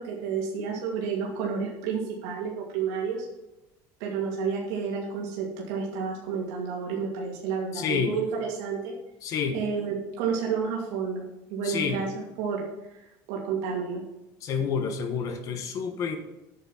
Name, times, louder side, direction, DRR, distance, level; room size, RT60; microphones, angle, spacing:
voice 1, 0.0-3.3 4.0-8.9 9.5-11.2 11.5-12.1 12.4-13.0 13.3-14.0, right 6 dB, 80° right, -2 dB, 2.5 m, -30 dB
voice 2, 7.7-8.2 9.2-9.6 11.6-12.0 14.4-16.2, left 6 dB, 40° left, 7 dB, 1.1 m, -29 dB
9.0 x 6.9 x 5.8 m, 0.96 s
cardioid pair, 170°, 9 cm